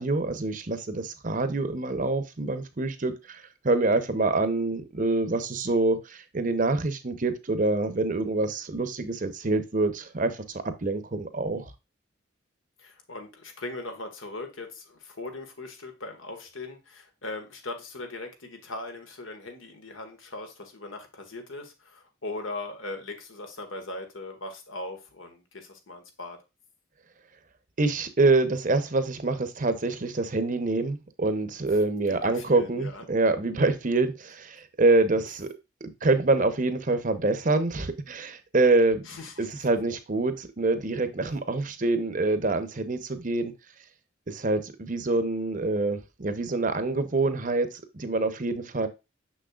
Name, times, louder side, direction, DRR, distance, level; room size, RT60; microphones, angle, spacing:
voice 1, 0.0-11.7 27.8-35.5 35.8-39.1 39.4-43.5 44.3-48.9, right 2 dB, 40° right, 0.8 m, -26 dB
voice 2, 12.8-26.4 32.1-33.0 39.0-39.5, left 2 dB, 80° left, 1.6 m, -39 dB
6.4 x 6.3 x 2.4 m
head